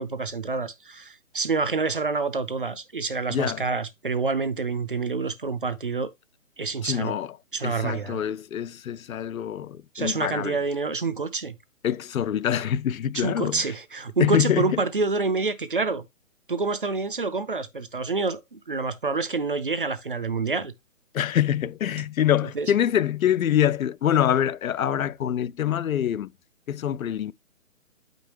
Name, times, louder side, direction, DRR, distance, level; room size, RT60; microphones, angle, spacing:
voice 1, 0.0-6.1 6.6-7.2 7.5-8.2 9.9-11.5 13.1-16.0 16.5-20.7 22.6-22.7, right 4 dB, 40° right, 0.5 m, -27 dB
voice 2, 3.3-3.6 6.8-7.4 7.6-10.6 11.8-13.7 14.2-14.8 21.1-26.3 26.7-27.3, left 10 dB, 80° left, 0.6 m, -25 dB
8.0 x 5.3 x 2.9 m
hypercardioid pair, 175°, 41 cm